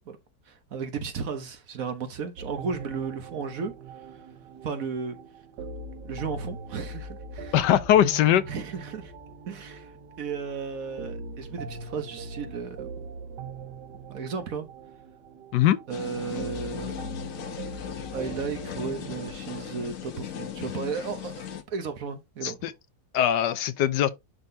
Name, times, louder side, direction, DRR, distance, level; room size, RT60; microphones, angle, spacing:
voice 1, 0.5-3.7 4.6-5.2 6.0-7.6 8.5-9.1 9.5-9.9 10.2-12.9 14.1-14.7 15.9-17.3 18.1-22.6, right 5 dB, 60° right, 1.3 m, -34 dB
sound 1, 2.4-19.3, right 3 dB, 75° right, 1.5 m, -41 dB
voice 2, 7.5-8.4 15.5-15.8 22.4-22.7 23.1-24.1, left 11 dB, 80° left, 1.3 m, -21 dB
sound 2, 15.9-21.6, left 9 dB, 60° left, 1.1 m, -37 dB
11.0 x 3.9 x 2.7 m
omnidirectional pair, 1.8 m